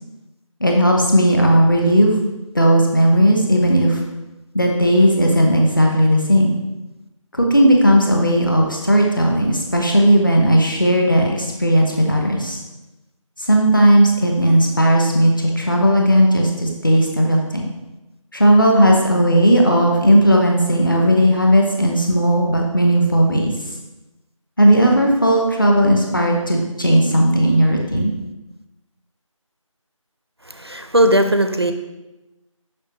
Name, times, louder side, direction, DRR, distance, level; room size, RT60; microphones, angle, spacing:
voice 1, 0.6-2.2 2.5-4.0 4.5-6.6 7.3-12.6 13.4-17.7 18.3-23.5 24.6-28.1, equal, 40° left, 0 dB, 1.0 m, -15 dB
voice 2, 30.5-31.7, right 1 dB, 50° right, 7 dB, 0.4 m, -17 dB
6.4 x 5.4 x 3.1 m, 1.0 s
figure-of-eight pair, 175°, 17 cm